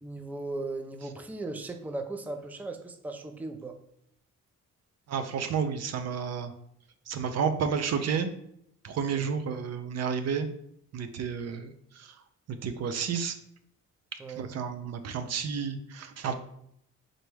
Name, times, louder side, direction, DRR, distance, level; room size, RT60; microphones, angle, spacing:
voice 1, 0.0-3.8 9.1-9.2 14.2-14.4, right 2 dB, 5° right, 5 dB, 0.4 m, -37 dB
voice 2, 5.1-6.5 7.1-8.3 8.8-10.5 10.9-12.1 12.6-13.4 14.4-16.4, right 6 dB, 60° right, 8 dB, 0.5 m, -31 dB
3.9 x 3.4 x 3.2 m, 0.73 s
cardioid pair, 90°, 30 cm